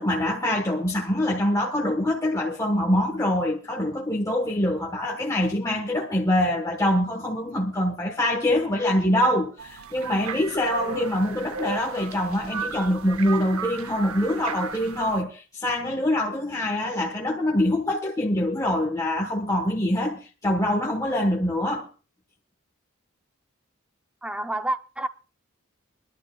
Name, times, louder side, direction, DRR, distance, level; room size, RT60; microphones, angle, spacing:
voice 1, 0.0-21.9, left 1 dB, 15° left, 1.2 m, -24 dB
sound 1, 9.6-15.2, right 5 dB, 85° right, 0.7 m, -35 dB
voice 2, 24.2-25.1, right 1 dB, 5° right, 0.6 m, -28 dB
25.0 x 11.5 x 2.3 m
head